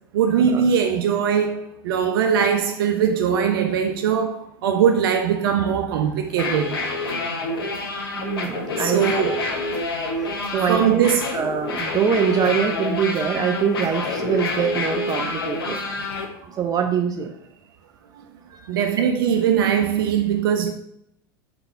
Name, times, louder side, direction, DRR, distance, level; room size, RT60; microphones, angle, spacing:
voice 1, 0.1-6.8 8.8-9.5 10.7-11.3 15.2-15.3 16.1-16.2 18.1-18.2 18.7-20.7, right 7 dB, 70° right, 0.7 m, -21 dB
sound 1, 6.3-16.3, left 2 dB, 80° left, 1.1 m, -27 dB
voice 2, 8.1-9.0 10.5-11.1 11.3-15.8 16.4-17.3 18.5-18.6, right 7 dB, 30° right, 0.7 m, -23 dB
4.9 x 3.9 x 5.5 m
hypercardioid pair, 85°, 12 cm